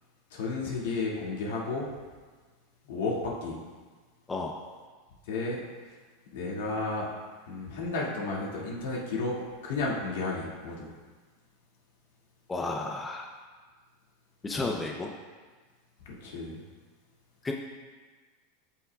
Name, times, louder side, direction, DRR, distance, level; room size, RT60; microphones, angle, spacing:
voice 1, 0.3-1.9 2.9-3.6 5.3-5.6 6.3-7.1 7.5-9.4 9.6-10.9 16.1-16.6, left 3 dB, 80° left, -4 dB, 2.3 m, -32 dB
voice 2, 4.3-4.6 12.5-13.3 14.4-15.1 17.4-17.5, left 3 dB, 15° left, 0 dB, 0.7 m, -32 dB
14.5 x 5.7 x 2.4 m, 1.4 s
supercardioid pair, 135°, 0 cm